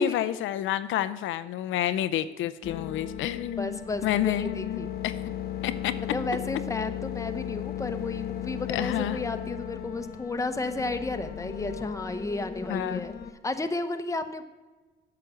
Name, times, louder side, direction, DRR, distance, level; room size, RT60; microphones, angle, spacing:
voice 1, 0.0-5.2 5.6-5.9 8.7-9.2 12.7-13.1, left 12 dB, 85° left, 12 dB, 0.5 m, -29 dB
sound 1, 2.6-13.3, left 9 dB, 50° left, 1.1 m, -36 dB
voice 2, 3.6-4.9 6.1-13.2 13.4-14.4, left 3 dB, 15° left, 8 dB, 0.8 m, -32 dB
8.4 x 5.9 x 7.8 m, 1.2 s
cardioid pair, 90°, 20 cm